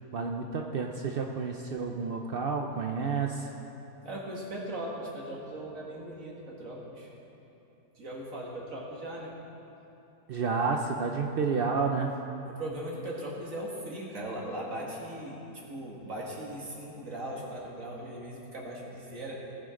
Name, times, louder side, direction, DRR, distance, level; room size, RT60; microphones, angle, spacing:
voice 1, 0.1-3.5 10.3-12.2, right 5 dB, 70° right, 2 dB, 0.5 m, -30 dB
voice 2, 4.0-7.1 8.0-9.3 12.5-15.4 15.7-19.4, right 1 dB, 55° right, -3 dB, 2.3 m, -39 dB
18.0 x 10.5 x 3.8 m, 2.9 s
omnidirectional pair, 1.8 m